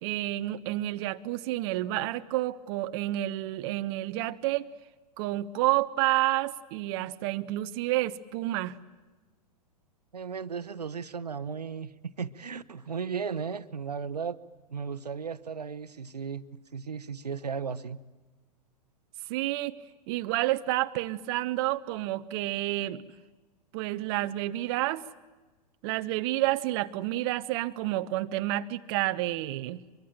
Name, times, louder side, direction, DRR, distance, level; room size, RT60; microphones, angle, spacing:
voice 1, 0.0-4.7 5.2-8.7 19.3-19.7 20.1-23.0 23.7-25.0 25.8-29.8, right 16 dB, 40° right, 0.8 m, -29 dB
voice 2, 10.1-14.4 14.7-18.0, right 6 dB, 75° right, 1.0 m, -35 dB
24.0 x 23.5 x 9.0 m
figure-of-eight pair, 100°, 21 cm